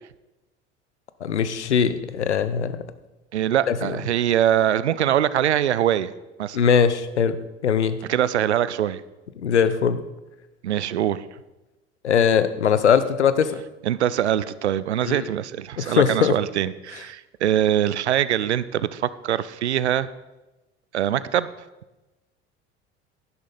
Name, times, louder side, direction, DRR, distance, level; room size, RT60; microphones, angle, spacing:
voice 1, 1.2-2.8 3.7-4.0 6.5-7.4 7.6-8.0 9.4-10.0 12.0-13.6 15.0-15.3 15.8-16.4, left 7 dB, 85° left, 13 dB, 0.7 m, -20 dB
voice 2, 3.3-6.1 6.4-6.6 8.1-9.0 10.6-11.2 13.8-20.1 20.9-21.5, right 11 dB, 80° right, 17 dB, 0.5 m, -23 dB
11.0 x 11.0 x 4.0 m, 1.0 s
figure-of-eight pair, 70°, 34 cm